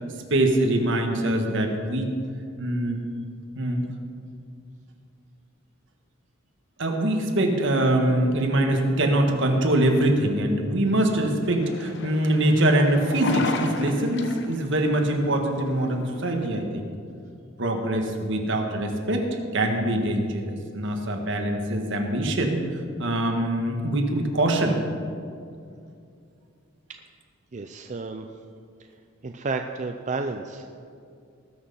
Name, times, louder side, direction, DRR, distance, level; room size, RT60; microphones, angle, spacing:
voice 1, 0.3-2.1 2.6-3.0 3.6-3.9 6.8-16.8 17.6-22.6 23.0-24.7, right 1 dB, 65° right, 3 dB, 1.6 m, -23 dB
sound 1, 11.4-16.5, left 2 dB, 60° left, 1.0 m, -34 dB
voice 2, 27.5-28.3 28.8-29.0 29.2-30.7, right 3 dB, 35° right, 5 dB, 0.5 m, -31 dB
19.5 x 6.5 x 5.6 m, 2.4 s
head